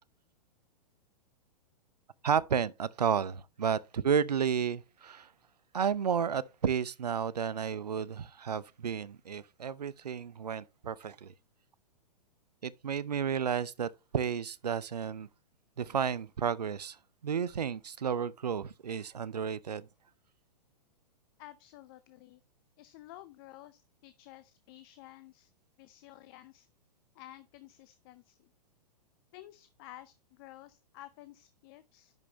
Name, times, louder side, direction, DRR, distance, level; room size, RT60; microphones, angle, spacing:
voice 1, 2.2-5.3 5.7-11.3 12.6-15.3 15.8-17.0 17.2-19.9, right 7 dB, 75° right, 0.5 m, -32 dB
voice 2, 21.4-22.4 22.8-25.5 25.8-26.7 27.1-28.5 29.3-32.1, left 15 dB, 35° left, 0.5 m, -52 dB
10.5 x 5.3 x 3.0 m
figure-of-eight pair, 105°, 21 cm